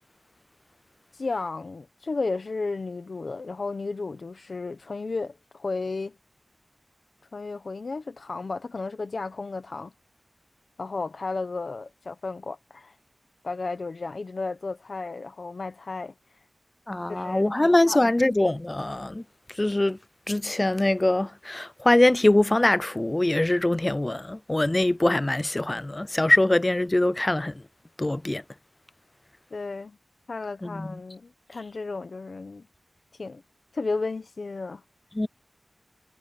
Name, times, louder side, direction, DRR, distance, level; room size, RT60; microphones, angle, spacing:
voice 1, 1.1-6.1 7.3-9.9 10.8-12.9 13.4-16.1 17.1-18.0 29.5-30.0 30.3-32.6 33.2-33.4 33.7-34.8, left 3 dB, 70° left, 1.1 m, -33 dB
voice 2, 16.9-19.2 19.6-20.0 20.3-27.5 28.0-28.4 30.6-30.9 35.2-35.3, left 1 dB, 25° left, 0.5 m, -23 dB
wide cardioid pair, 60°, 0 cm